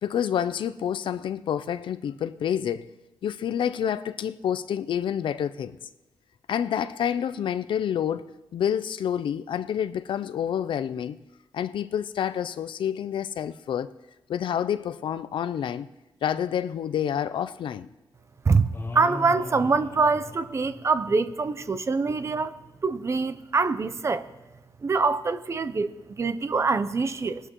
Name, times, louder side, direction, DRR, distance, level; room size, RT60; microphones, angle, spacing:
voice 1, 0.0-2.9 3.2-5.8 6.5-11.2 11.5-13.9 14.3-15.9 16.2-17.9, left 9 dB, 80° left, 0.4 m, -28 dB
voice 2, 18.4-22.5 22.8-24.3 24.8-27.4, right 4 dB, 35° right, 0.5 m, -24 dB
sound 1, 18.7-21.2, left 3 dB, 25° left, 0.9 m, -38 dB
20.5 x 11.0 x 3.0 m
wide cardioid pair, 130°, 8 cm